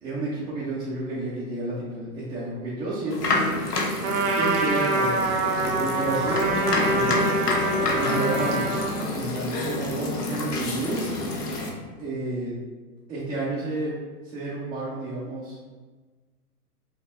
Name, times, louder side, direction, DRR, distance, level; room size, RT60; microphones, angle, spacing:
voice 1, 0.0-3.5 3.9-4.0 4.4-5.3 5.7-7.1 7.9-8.7 9.0-11.1 12.0-12.6 13.1-13.9 14.2-15.6, right 2 dB, 10° right, -10 dB, 0.5 m, -31 dB
sound 1, 3.1-11.7, left 2 dB, 80° left, 0.9 m, -28 dB
Trumpet, 4.0-8.9, right 3 dB, 65° right, 0.8 m, -25 dB
5.3 x 2.0 x 3.4 m, 1.3 s
hypercardioid pair, 115°, 46 cm